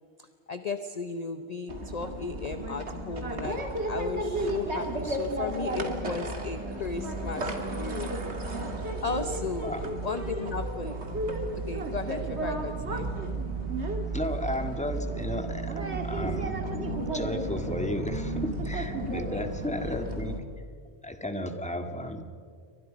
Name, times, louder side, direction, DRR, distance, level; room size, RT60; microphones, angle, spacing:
voice 1, 0.2-3.6 3.9-8.7 9.0-9.7 10.0-11.0 11.5-13.1 19.3-19.5 19.8-20.0, left 4 dB, 40° left, 8 dB, 0.9 m, -36 dB
sound 1, 1.7-20.4, right 2 dB, 85° right, 2.5 m, -33 dB
voice 2, 14.1-16.6 17.0-20.4 21.0-22.2, left 1 dB, 5° left, 5 dB, 1.8 m, -33 dB
29.5 x 24.5 x 5.2 m, 2.2 s
omnidirectional pair, 1.1 m